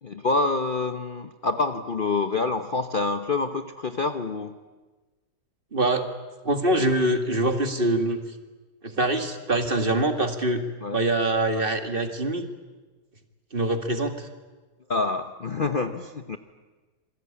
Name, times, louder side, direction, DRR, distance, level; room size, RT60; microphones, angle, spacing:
voice 1, 0.0-4.6 10.8-11.0 14.9-16.4, left 3 dB, 40° left, 7 dB, 0.9 m, -27 dB
voice 2, 5.7-6.1 6.4-8.2 8.8-10.6 10.9-12.5 13.5-14.3, right 1 dB, 35° right, 6 dB, 2.1 m, -24 dB
27.0 x 22.0 x 8.7 m, 1.3 s
omnidirectional pair, 1.7 m